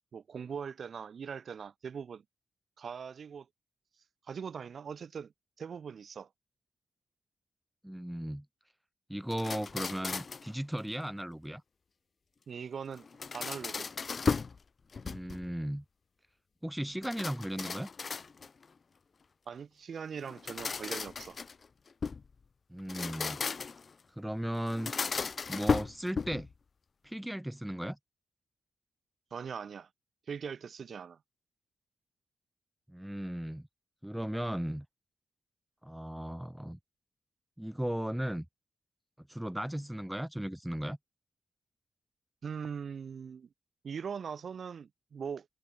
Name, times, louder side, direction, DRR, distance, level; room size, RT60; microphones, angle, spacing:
voice 1, 0.1-2.2 2.8-3.5 4.3-6.3 12.5-13.1 13.3-13.9 19.5-21.4 29.3-29.9 30.3-31.2 42.4-43.5 43.8-45.5, right 6 dB, 60° right, 4.1 m, -41 dB
voice 2, 7.8-8.4 9.1-11.6 15.0-15.8 16.6-17.9 22.7-23.4 24.2-24.9 25.5-26.5 27.0-28.0 32.9-33.7 34.0-34.8 35.8-36.8 37.6-38.4 39.3-41.0, equal, 5° right, 1.3 m, -36 dB
sound 1, 9.3-10.5 12.9-14.6 14.9-15.5 17.0-18.6 20.2-22.3 22.8-23.9 24.7-26.5, left 5 dB, 45° left, 1.0 m, -35 dB
cardioid pair, 85°, 0 cm